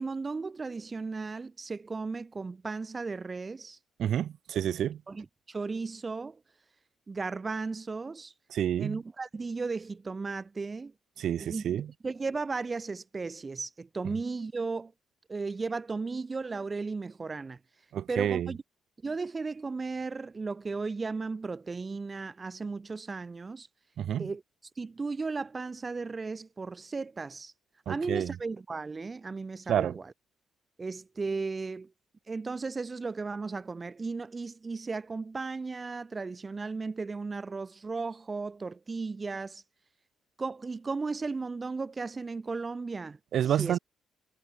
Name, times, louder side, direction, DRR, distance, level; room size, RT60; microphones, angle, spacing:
voice 1, 0.0-3.8 5.1-6.4 7.1-8.3 8.8-10.9 11.4-11.6 12.0-14.9 15.3-17.6 18.1-18.6 19.0-23.7 24.2-24.4 24.8-27.5 27.9-30.1 30.8-31.9 32.3-39.6 40.4-43.2 43.5-43.8, right 4 dB, 30° right, 0.7 m, -35 dB
voice 2, 4.0-5.0 8.5-9.0 11.2-11.9 17.9-18.5 24.0-24.3 27.9-28.3 29.7-30.0 43.3-43.8, right 10 dB, 70° right, 1.6 m, -29 dB
cardioid pair, 90°, 0 cm